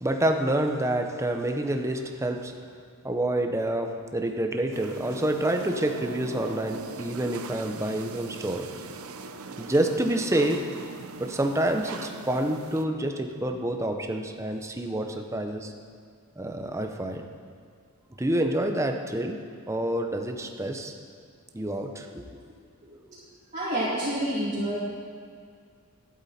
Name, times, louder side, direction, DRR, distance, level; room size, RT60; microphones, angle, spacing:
voice 1, 0.0-2.5 3.0-8.7 9.6-10.6 11.2-15.7 16.4-17.2 18.2-19.4 19.7-20.9 21.5-22.2, right 1 dB, 15° right, 4 dB, 0.8 m, -28 dB
sound 1, 4.7-12.8, right 4 dB, 75° right, 0.7 m, -40 dB
voice 2, 23.5-24.8, right 1 dB, 35° right, -10 dB, 2.7 m, -28 dB
12.5 x 11.5 x 4.3 m, 2.1 s
head